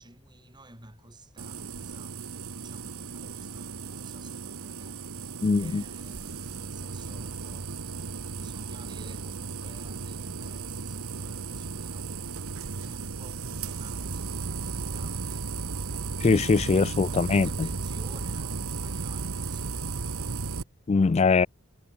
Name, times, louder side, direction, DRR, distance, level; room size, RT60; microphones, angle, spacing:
voice 1, 0.0-15.7 17.0-20.3, right 1 dB, 20° right, 6.8 m, -52 dB
sound 1, 1.4-20.6, right 4 dB, 85° right, 1.1 m, -35 dB
voice 2, 5.4-5.8 16.2-17.7 20.9-21.5, left 4 dB, 30° left, 0.3 m, -22 dB
head